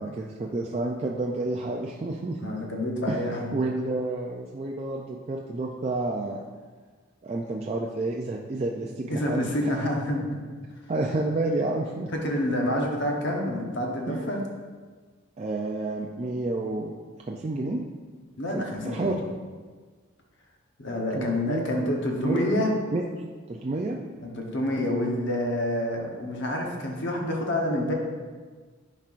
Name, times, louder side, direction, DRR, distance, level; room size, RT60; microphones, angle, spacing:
voice 1, 0.0-2.5 3.1-3.2 3.5-6.4 7.2-9.8 10.9-12.1 14.1-14.2 15.4-16.9 17.3-17.8 18.5-19.2 21.1-21.6 22.2-22.4 22.9-23.0 23.5-24.0, right 2 dB, 30° right, -1 dB, 0.3 m, -30 dB
voice 2, 2.4-3.6 9.1-10.4 12.2-14.4 18.4-19.2 20.8-22.7 24.2-27.9, left 1 dB, 55° left, 0 dB, 0.9 m, -28 dB
10.5 x 4.4 x 2.5 m, 1.5 s
head